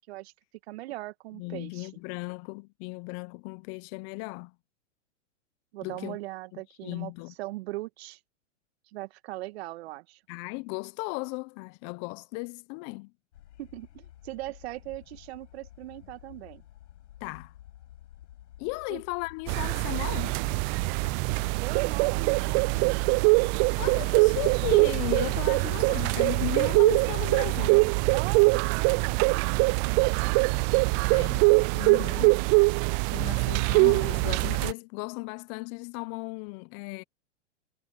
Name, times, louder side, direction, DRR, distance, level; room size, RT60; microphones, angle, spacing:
voice 1, 0.7-1.9 5.7-7.1 7.4-8.2 8.9-10.2 13.6-16.6 18.9-19.0 21.6-23.2 28.1-30.4 33.2-33.4, right 18 dB, 55° right, 2.0 m, -40 dB
voice 2, 1.3-4.5 5.8-6.2 6.8-7.3 10.3-13.1 17.2-17.5 18.6-20.4 23.8-27.9 31.1-31.5 31.7-32.5 33.1-37.0, left 28 dB, 40° left, 1.1 m, -36 dB
sound 1, 13.3-24.1, left 13 dB, 70° left, 7.2 m, -52 dB
sound 2, 19.5-34.7, right 31 dB, 30° right, 0.5 m, -23 dB
hypercardioid pair, 115°, 37 cm